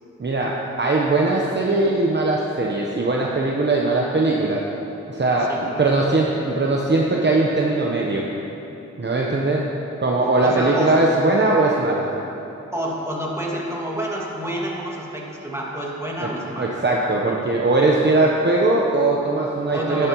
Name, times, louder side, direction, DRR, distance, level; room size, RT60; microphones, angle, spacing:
voice 1, 0.2-4.6 5.1-8.2 9.0-9.6 10.0-12.1 16.2-16.3 16.6-20.1, right 2 dB, 35° right, -2 dB, 1.0 m, -20 dB
voice 2, 5.5-5.8 10.4-11.0 12.7-16.8 19.7-20.1, right 1 dB, 10° right, -4 dB, 2.2 m, -28 dB
11.0 x 10.5 x 3.1 m, 2.9 s
cardioid pair, 50°, 32 cm